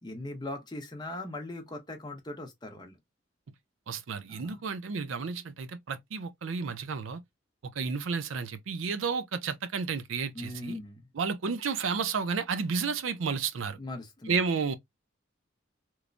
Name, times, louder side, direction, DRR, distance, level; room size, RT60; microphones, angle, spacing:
voice 1, 0.0-3.0 4.3-4.6 10.3-11.1 13.8-14.3, left 2 dB, 20° left, 0.7 m, -40 dB
voice 2, 3.9-7.2 7.6-10.8 11.1-13.8 14.3-14.8, right 5 dB, 75° right, 0.5 m, -32 dB
3.1 x 2.1 x 2.4 m
head